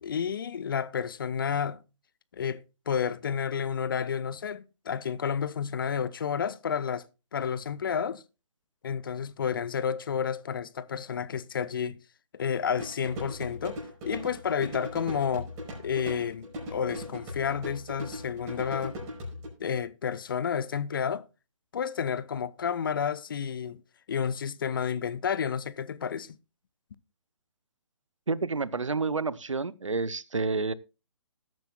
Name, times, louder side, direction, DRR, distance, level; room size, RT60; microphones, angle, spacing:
voice 1, 0.0-1.8 2.3-7.0 7.3-8.2 8.8-12.0 12.3-15.5 15.8-19.0 19.6-21.3 21.7-23.8 24.1-26.4, left 7 dB, 45° left, 0.6 m, -31 dB
sound 1, 12.8-19.5, left 1 dB, 20° right, 5.3 m, -39 dB
voice 2, 28.3-30.7, right 4 dB, 75° right, 0.8 m, -29 dB
19.5 x 9.2 x 2.3 m
figure-of-eight pair, 135°, 16 cm